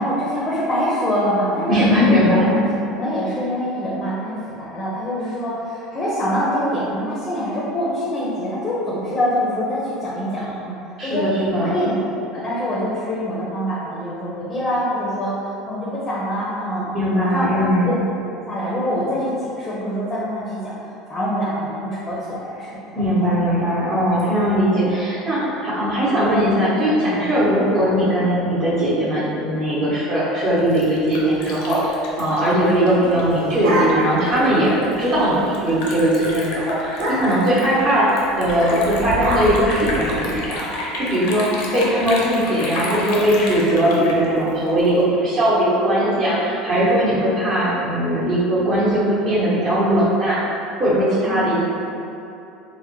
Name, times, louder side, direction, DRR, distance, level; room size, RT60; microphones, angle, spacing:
voice 1, 0.0-2.6 2.9-10.8 11.0-11.3 11.6-11.9 12.3-15.3 15.7-16.9 17.3-18.0 18.3-20.7 21.1-22.7 23.1-23.4 51.2-51.6, equal, 15° left, -7 dB, 0.5 m, -24 dB
voice 2, 1.7-2.5 11.0-11.7 16.9-17.9 22.9-31.8 32.2-41.5 41.7-50.5 50.8-51.6, equal, 40° right, -11 dB, 0.9 m, -19 dB
Liquid, 30.4-45.0, left 2 dB, 70° left, 0.5 m, -32 dB
sound 1, 33.0-34.3 34.7-34.8 35.1-35.4 35.7-35.9 36.2-36.4 36.9-37.5 38.4-40.5, right 1 dB, 75° right, 0.9 m, -25 dB
3.5 x 2.1 x 3.0 m, 2.7 s
cardioid pair, 155°, 0 cm